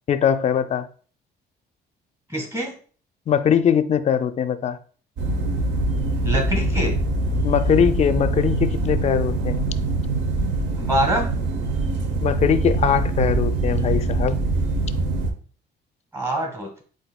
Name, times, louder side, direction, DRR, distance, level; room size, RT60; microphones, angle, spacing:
voice 1, 0.1-0.9 3.3-4.8 7.4-9.6 12.2-14.4, left 8 dB, 35° left, 0.4 m, -21 dB
voice 2, 2.3-2.7 6.2-7.0 10.8-11.3 16.1-16.8, right 1 dB, 15° right, 1.5 m, -25 dB
sound 1, 5.2-15.3, right 2 dB, 80° right, 0.8 m, -23 dB
7.8 x 2.6 x 2.2 m
cardioid pair, 115°, 19 cm